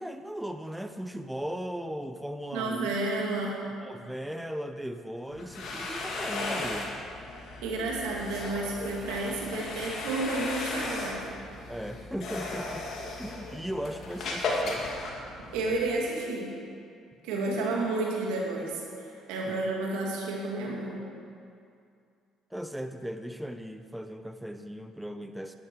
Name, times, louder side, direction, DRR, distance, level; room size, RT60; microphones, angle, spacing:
voice 1, 0.0-2.9 3.8-7.1 11.7-12.9 13.2-14.9 19.5-19.7 22.5-25.6, equal, 5° right, 7 dB, 0.6 m, -37 dB
voice 2, 2.5-3.6 7.6-11.3 15.5-16.5 17.2-21.0, right 2 dB, 85° right, -2 dB, 2.3 m, -31 dB
sound 1, 5.3-15.9, left 2 dB, 60° left, 2.1 m, -36 dB
11.0 x 10.0 x 4.7 m, 2.4 s
supercardioid pair, 70°, 0 cm